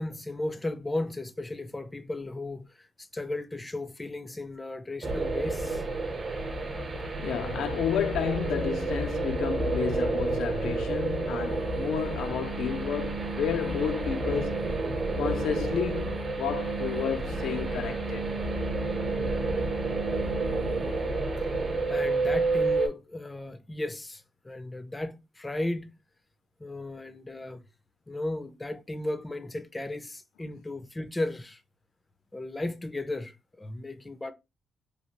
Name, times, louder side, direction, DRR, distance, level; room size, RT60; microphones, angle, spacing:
voice 1, 0.0-5.8 21.9-25.9 26.6-27.6 28.1-31.6 32.3-34.3, left 2 dB, 15° left, 0.4 m, -35 dB
sound 1, 5.0-22.9, right 2 dB, 40° right, 0.9 m, -30 dB
voice 2, 7.2-14.6 15.1-18.3, left 8 dB, 85° left, 0.4 m, -31 dB
sound 2, 11.5-21.2, right 5 dB, 55° right, 0.5 m, -39 dB
3.1 x 2.4 x 2.8 m
cardioid pair, 95°, 0 cm